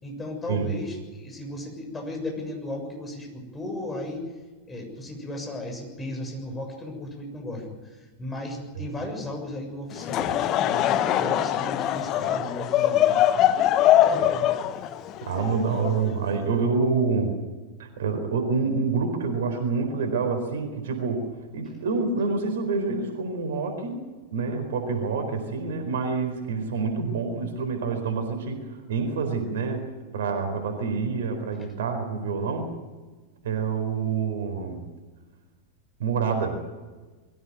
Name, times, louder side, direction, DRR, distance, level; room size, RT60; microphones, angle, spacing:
voice 1, 0.0-4.2 4.7-13.4 14.0-14.5, left 1 dB, 15° left, 2 dB, 6.8 m, -35 dB
Laughter / Crowd, 9.9-16.4, left 12 dB, 35° left, 1.1 m, -23 dB
voice 2, 15.3-17.3 17.8-21.2 21.5-24.1 24.3-29.9 30.1-32.7 33.4-34.8 36.0-36.6, right 4 dB, 60° right, 5 dB, 4.3 m, -27 dB
22.5 x 16.0 x 9.5 m, 1.3 s
figure-of-eight pair, 90°, 0 cm